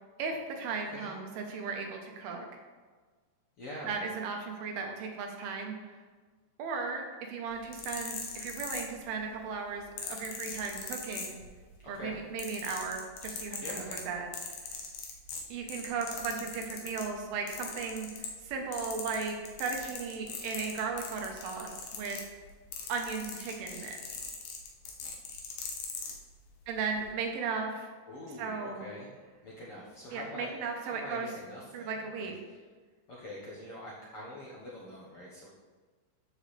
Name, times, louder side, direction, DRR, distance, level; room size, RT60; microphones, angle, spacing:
voice 1, 0.2-2.5 3.8-6.0 6.6-11.4 11.8-14.3 15.5-22.2 22.9-24.0 26.7-27.9 28.4-28.9 30.1-31.3 31.7-32.4, right 5 dB, 85° right, 3 dB, 3.0 m, -36 dB
voice 2, 0.8-1.2 3.6-4.0 11.8-12.2 13.6-14.0 28.1-29.1 29.4-32.6 33.1-35.5, left 1 dB, 60° left, -6 dB, 1.5 m, -44 dB
sound 1, 7.6-9.3 10.0-11.7 12.0-17.1 17.5-18.5 18.7-26.2 26.9-27.1, left 5 dB, 90° left, 3.1 m, -41 dB
13.5 x 5.2 x 3.3 m, 1.4 s
omnidirectional pair, 4.3 m